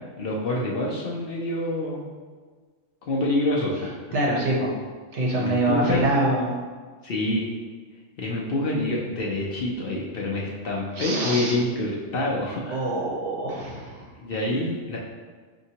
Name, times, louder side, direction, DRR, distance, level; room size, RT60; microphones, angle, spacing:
voice 1, 0.2-2.1 3.1-4.2 5.4-6.1 7.0-7.5 8.2-12.9 14.2-15.0, left 1 dB, 60° left, -3 dB, 0.7 m, -27 dB
voice 2, 4.1-4.7 5.1-6.5 11.0-11.5 12.7-14.0, right 1 dB, 65° right, -3 dB, 1.1 m, -25 dB
5.3 x 2.8 x 2.8 m, 1.5 s
omnidirectional pair, 1.3 m